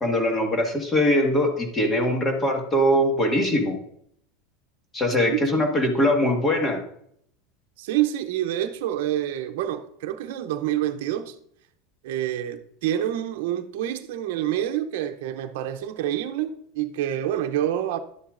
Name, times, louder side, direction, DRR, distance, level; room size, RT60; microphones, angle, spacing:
voice 1, 0.0-3.8 4.9-6.8, left 1 dB, 20° left, 1.8 m, -22 dB
voice 2, 5.3-5.7 7.8-11.4 12.0-18.0, right 12 dB, 70° right, 0.7 m, -27 dB
11.5 x 7.1 x 2.5 m
supercardioid pair, 130°, 0 cm